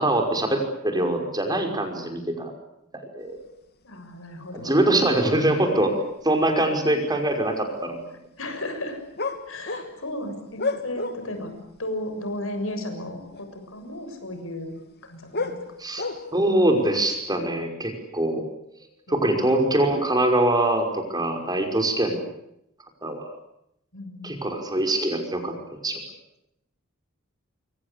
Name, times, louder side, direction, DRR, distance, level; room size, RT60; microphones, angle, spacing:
voice 1, 0.0-2.5 2.9-3.4 4.6-6.0 6.2-8.0 15.8-16.0 16.3-18.4 19.1-22.2 23.0-23.3 24.2-26.0, right 1 dB, 20° right, 4 dB, 5.7 m, -23 dB
voice 2, 3.8-4.7 6.6-6.7 8.4-9.0 9.5-11.5 11.8-14.8 15.0-15.6 19.1-19.5 23.9-24.3, left 1 dB, 75° left, 7 dB, 7.0 m, -34 dB
sound 1, 5.7-5.8 6.3-6.8 7.2-7.3 9.2-11.4 11.7-11.8 12.9-13.0 13.3-13.6 14.8-16.6 17.1-17.3, left 3 dB, 50° left, 2.8 m, -31 dB
27.0 x 24.5 x 8.5 m, 0.78 s
head